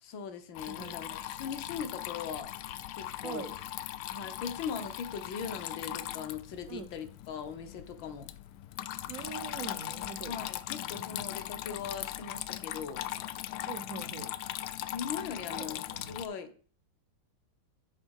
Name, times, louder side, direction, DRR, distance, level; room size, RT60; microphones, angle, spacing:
voice 1, 0.0-2.5 2.9-3.5 4.1-8.3 10.3-13.1 14.9-16.5, left 6 dB, 65° left, 8 dB, 1.6 m, -40 dB
Water tap faucet / Trickle dribble, 0.5-16.3, left 13 dB, 85° left, 0.9 m, -39 dB
voice 2, 0.7-1.1 3.2-3.5 6.7-6.9 9.1-10.4 13.7-14.3 15.4-16.2, right 7 dB, 65° right, 9 dB, 0.8 m, -43 dB
9.9 x 3.5 x 6.3 m, 0.42 s
omnidirectional pair, 2.3 m